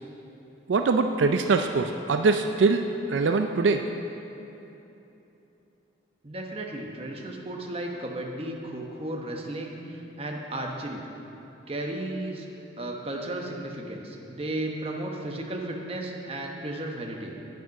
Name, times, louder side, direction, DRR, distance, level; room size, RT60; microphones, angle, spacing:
voice 1, 0.7-3.9, right 4 dB, 75° right, 6 dB, 0.4 m, -23 dB
voice 2, 6.2-11.0 11.7-12.5 12.8-17.4, right 1 dB, 30° right, 1 dB, 1.0 m, -34 dB
9.2 x 8.9 x 5.9 m, 3.0 s
head